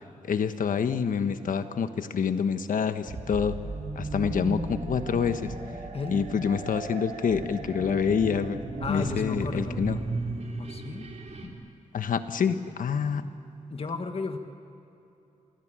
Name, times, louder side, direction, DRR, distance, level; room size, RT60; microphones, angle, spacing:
voice 1, 0.2-3.5 3.9-5.5 6.1-8.6 8.9-10.0 11.9-13.2, left 6 dB, 85° left, 9 dB, 1.3 m, -27 dB
sound 1, 3.1-11.5, right 2 dB, 55° right, 3.5 m, -35 dB
voice 2, 5.9-6.2 8.8-9.8 10.6-11.1 11.4-11.6 13.7-14.4, left 4 dB, 45° left, 6 dB, 1.7 m, -34 dB
27.0 x 20.5 x 8.9 m, 2.8 s
wide cardioid pair, 100°, 14 cm